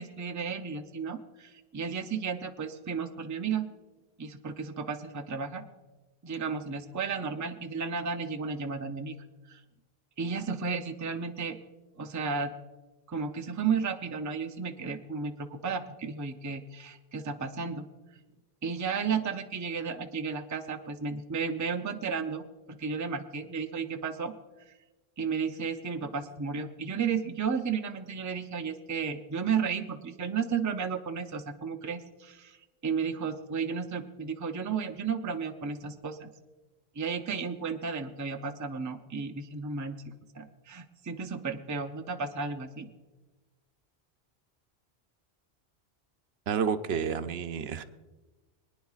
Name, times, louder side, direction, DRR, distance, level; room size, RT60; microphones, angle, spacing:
voice 1, 0.0-3.7 4.2-5.6 6.2-9.6 10.2-11.6 12.0-12.5 13.1-17.9 18.6-24.3 24.7-24.8 25.2-32.6 32.8-36.3 36.9-40.0 40.3-42.9, right 5 dB, 25° right, 6 dB, 0.5 m, -33 dB
voice 2, 46.5-47.8, right 7 dB, 75° right, 10 dB, 0.8 m, -30 dB
24.0 x 9.8 x 2.4 m, 1.2 s
omnidirectional pair, 1.1 m